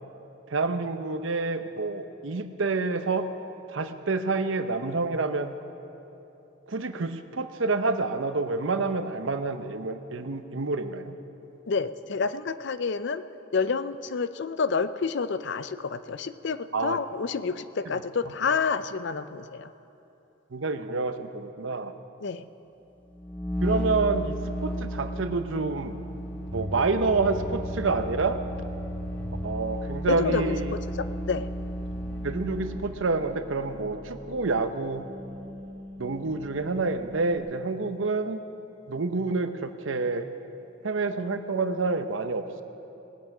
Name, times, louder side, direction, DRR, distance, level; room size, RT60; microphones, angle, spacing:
voice 1, 0.5-3.3 3.7-5.5 6.7-11.1 16.7-17.0 17.9-18.0 20.5-21.9 23.6-26.0 26.5-28.4 29.4-30.7 32.2-35.1 36.0-38.4 38.9-40.3 40.8-42.6, right 3 dB, 70° right, 9 dB, 0.7 m, -28 dB
voice 2, 11.7-13.2 13.5-19.7 22.2-22.4 30.1-31.5, left 5 dB, 60° left, 13 dB, 0.5 m, -29 dB
sound 1, 23.1-33.0, equal, 5° left, 0.5 m, -34 dB
sound 2, 26.5-37.4, equal, 40° right, 1.8 m, -42 dB
20.0 x 8.9 x 6.0 m, 2.9 s
head